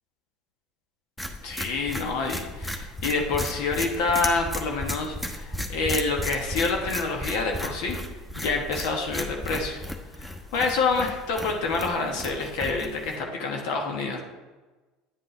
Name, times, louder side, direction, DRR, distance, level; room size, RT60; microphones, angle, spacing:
sound 1, 1.2-13.2, left 1 dB, 5° left, 1.2 m, -35 dB
voice 1, 1.4-8.0 8.4-9.8 10.2-14.2, left 3 dB, 65° left, 1 dB, 1.2 m, -27 dB
9.5 x 7.8 x 3.3 m, 1.2 s
hypercardioid pair, 75°, 0 cm